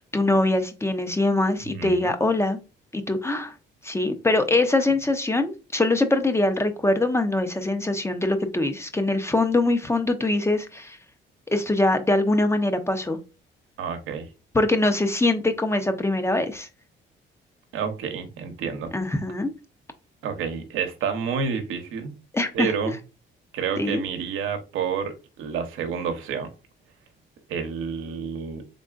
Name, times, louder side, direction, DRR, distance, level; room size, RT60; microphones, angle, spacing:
voice 1, 0.0-2.6 2.9-3.5 3.8-11.0 11.5-13.2 14.5-16.7 18.9-19.5 22.3-22.7 23.8-24.0, left 2 dB, 15° left, 0.6 m, -23 dB
voice 2, 1.7-2.1 13.8-14.3 17.7-18.9 20.2-22.1 22.5-22.9 23.5-26.5 27.5-28.6, right 6 dB, 90° right, 0.8 m, -29 dB
3.8 x 3.5 x 2.4 m
cardioid pair, 90°, 20 cm